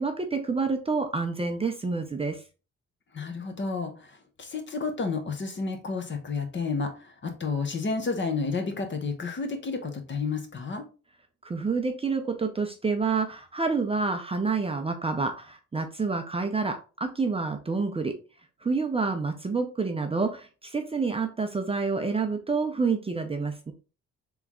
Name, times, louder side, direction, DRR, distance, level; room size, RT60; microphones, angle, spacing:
voice 1, 0.0-2.4 11.4-18.2 18.6-23.7, right 4 dB, 20° right, 5 dB, 0.6 m, -28 dB
voice 2, 3.1-10.8, left 4 dB, 40° left, 6 dB, 1.0 m, -31 dB
3.4 x 3.1 x 3.6 m, 0.34 s
cardioid pair, 90°, 30 cm